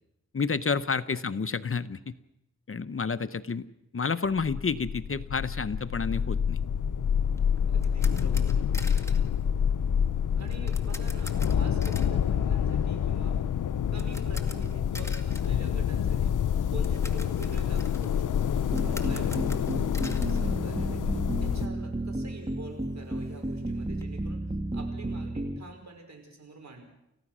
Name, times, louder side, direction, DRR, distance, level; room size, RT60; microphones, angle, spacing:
voice 1, 0.3-2.1 2.7-3.6 3.9-6.6, left 5 dB, 45° left, 13 dB, 0.9 m, -30 dB
sound 1, 4.2-21.7, left 8 dB, 90° left, 0.7 m, -27 dB
sound 2, 7.3-21.3 21.6-21.7 22.1-22.2 22.5-24.0, left 1 dB, 10° left, 2.2 m, -47 dB
voice 2, 7.7-9.0 10.4-13.4 13.9-19.7 20.1-24.4 24.7-26.8, right 2 dB, 65° right, 3 dB, 5.3 m, -46 dB
sound 3, 18.7-25.6, right 1 dB, 20° right, 1.8 m, -33 dB
30.0 x 15.5 x 6.2 m, 0.85 s
cardioid pair, 60°, 30 cm